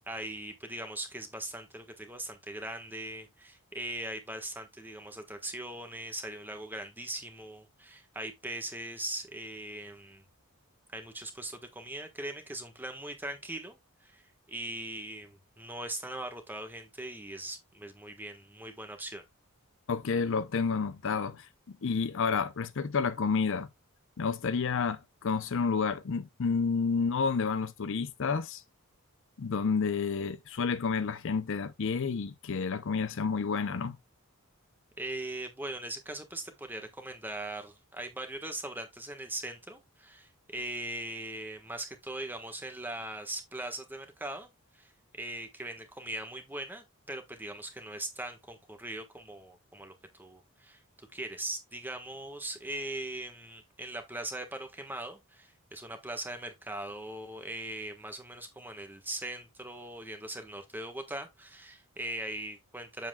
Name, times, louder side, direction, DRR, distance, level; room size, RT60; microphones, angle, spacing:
voice 1, 0.1-10.2 10.9-19.2 35.0-44.5 44.7-63.1, right 1 dB, 10° right, 1.3 m, -40 dB
voice 2, 19.9-21.5 21.8-23.7 24.2-28.6 29.4-34.0, left 5 dB, 60° left, 0.5 m, -30 dB
7.6 x 7.3 x 2.3 m
head